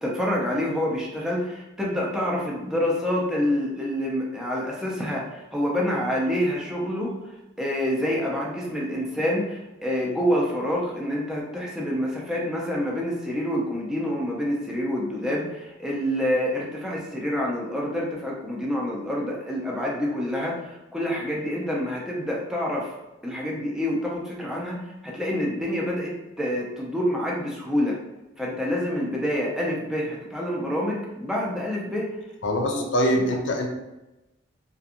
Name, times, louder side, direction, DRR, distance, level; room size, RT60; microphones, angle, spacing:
voice 1, 0.0-7.1 7.6-22.9 23.2-24.8 25.0-26.1 26.4-27.9 28.4-32.1 32.7-32.9, equal, 5° right, -4 dB, 0.5 m, -27 dB
voice 2, 32.4-33.7, equal, 70° left, 2 dB, 0.4 m, -23 dB
2.5 x 2.3 x 2.8 m, 0.98 s
head